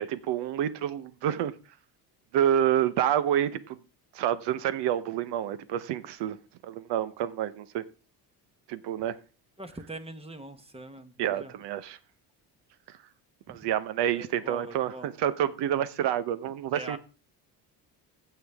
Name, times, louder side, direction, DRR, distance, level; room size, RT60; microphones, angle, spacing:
voice 1, 0.0-1.5 2.3-3.8 4.1-6.4 6.6-7.8 8.7-9.2 11.2-12.0 13.5-17.0, right 10 dB, 70° right, 0.9 m, -28 dB
voice 2, 9.6-11.5 13.5-13.7 14.1-15.1 16.7-17.0, right 2 dB, 15° right, 1.0 m, -42 dB
15.5 x 6.8 x 3.5 m
cardioid pair, 120°, 42 cm